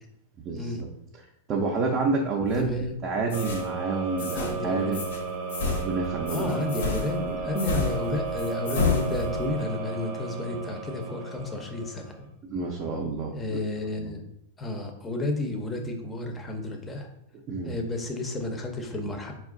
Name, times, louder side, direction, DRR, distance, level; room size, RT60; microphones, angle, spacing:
voice 1, 0.4-0.9 1.1-2.7 3.0-5.0 5.6-6.5 7.2-7.5 12.4-13.6 14.0-14.2 17.5-17.8, right 3 dB, 30° right, -1 dB, 0.5 m, -29 dB
sound 1, 2.5-2.9 3.3-3.7 4.2-4.6 4.9-5.2 5.5-9.6, left 4 dB, 85° left, 0.8 m, -31 dB
voice 2, 2.6-2.9 4.2-5.0 6.3-12.1 13.3-14.2 14.6-17.1 17.6-19.3, left 2 dB, 15° left, 3 dB, 0.6 m, -31 dB
sound 2, 3.3-12.2, right 5 dB, 65° right, 0.7 m, -34 dB
4.4 x 2.4 x 3.6 m, 0.79 s
hypercardioid pair, 135°, 0 cm